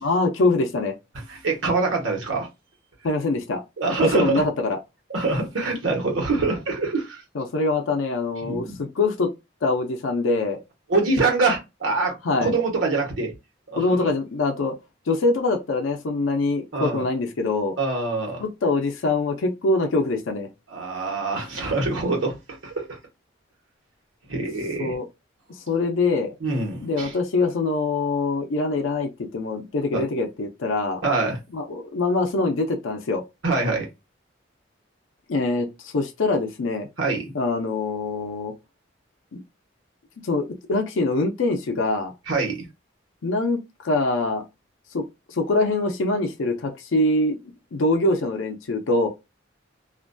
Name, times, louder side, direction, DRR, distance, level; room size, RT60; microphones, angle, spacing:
voice 1, 0.0-1.0 3.0-3.6 4.1-4.8 7.4-9.3 9.6-10.6 12.2-12.5 13.8-14.7 15.1-17.8 18.4-20.5 24.8-25.1 25.7-26.3 26.8-31.0 31.5-33.2 35.3-36.9 37.3-38.5 39.3-39.4 40.2-42.1 43.2-44.4 44.9-45.0 45.3-47.4 47.7-49.1, left 2 dB, 90° left, 0.5 m, -24 dB
voice 2, 1.3-2.5 3.8-4.5 5.1-7.2 8.4-8.8 10.9-12.1 12.4-13.3 13.7-14.1 16.7-17.0 17.8-18.4 20.7-23.0 24.3-25.0 26.4-27.1 29.9-30.0 31.0-31.4 33.4-33.9 37.0-37.3 42.3-42.7, right 3 dB, 85° right, 1.0 m, -25 dB
2.4 x 2.2 x 2.5 m
head